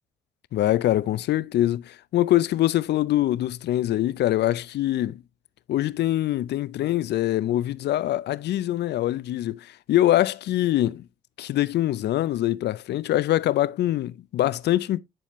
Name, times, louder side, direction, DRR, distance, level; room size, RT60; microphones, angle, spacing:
voice 1, 0.5-5.2 5.7-11.0 11.4-15.0, left 14 dB, 60° left, 0.5 m, -24 dB
10.0 x 4.3 x 3.0 m
supercardioid pair, 55°, 19 cm